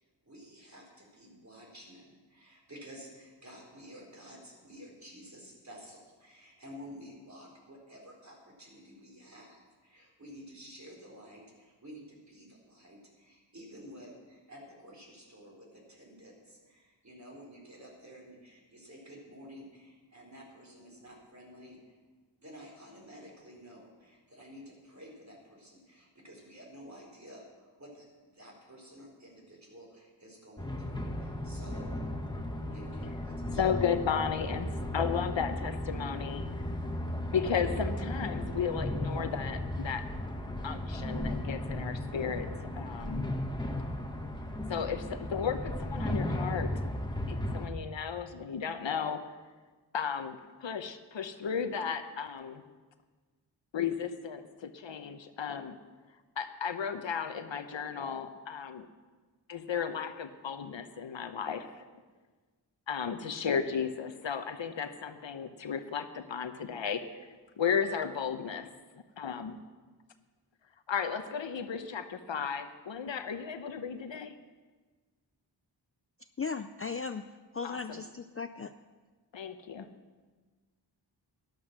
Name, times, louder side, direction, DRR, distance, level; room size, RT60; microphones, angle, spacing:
voice 1, 0.2-21.9 22.4-32.0 32.7-33.6, equal, 40° right, -2 dB, 4.3 m, -51 dB
sound 1, 30.6-47.7, left 1 dB, 10° left, 1.4 m, -35 dB
voice 2, 33.6-36.4 37.3-40.1 40.6-43.3 44.7-46.7 47.3-49.2 49.9-52.6 53.7-55.7 56.4-58.9 59.5-61.8 62.9-67.0 67.6-68.7 69.2-69.6 70.9-74.3 77.6-78.0 79.3-79.9, left 7 dB, 85° left, 9 dB, 0.9 m, -34 dB
voice 3, 76.4-77.2 77.5-78.7, left 5 dB, 30° left, 9 dB, 0.4 m, -36 dB
12.5 x 12.0 x 6.1 m, 1.4 s
wide cardioid pair, 80°, 44 cm